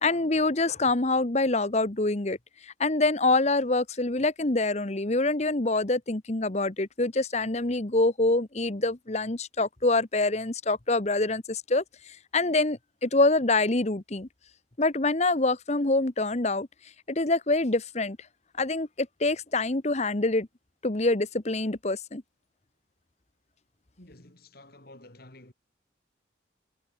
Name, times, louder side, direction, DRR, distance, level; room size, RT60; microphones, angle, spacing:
voice 1, 0.0-2.4 2.6-11.8 12.3-14.3 14.8-16.7 17.1-18.2 18.6-20.5 20.8-22.2, left 2 dB, 35° left, 1.1 m, -25 dB
voice 2, 24.0-25.5, left 1 dB, 50° left, 3.2 m, -51 dB
head